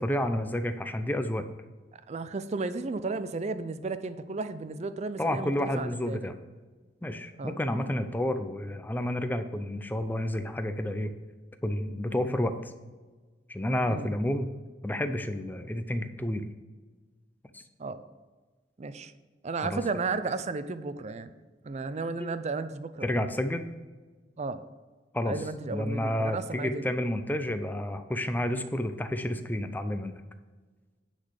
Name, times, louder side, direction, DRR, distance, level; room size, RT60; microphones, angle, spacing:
voice 1, 0.0-1.4 5.2-6.3 7.0-11.1 11.6-12.6 13.5-14.5 14.8-16.5 17.5-17.6 19.6-19.8 22.2-22.3 23.0-23.7 25.1-25.4 25.7-30.1, left 1 dB, 10° left, 8 dB, 0.5 m, -30 dB
voice 2, 2.1-6.3 7.4-7.5 13.9-14.1 17.8-18.0 18.8-19.1 19.4-21.3 21.6-23.3 24.4-24.6 25.3-27.0, right 3 dB, 40° right, 12 dB, 0.5 m, -34 dB
9.7 x 4.0 x 6.5 m, 1.3 s
head